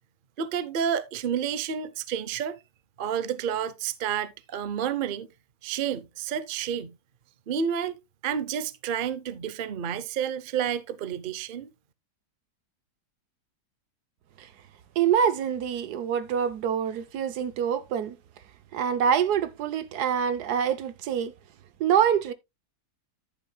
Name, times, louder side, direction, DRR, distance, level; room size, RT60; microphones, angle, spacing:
voice 1, 0.4-2.6 3.0-5.3 5.6-6.9 7.5-8.0 8.2-11.7, right 8 dB, 50° right, 0.6 m, -30 dB
voice 2, 15.0-18.2 18.7-21.3 21.8-22.3, right 8 dB, 70° right, 1.3 m, -25 dB
10.5 x 9.4 x 2.2 m
omnidirectional pair, 1.8 m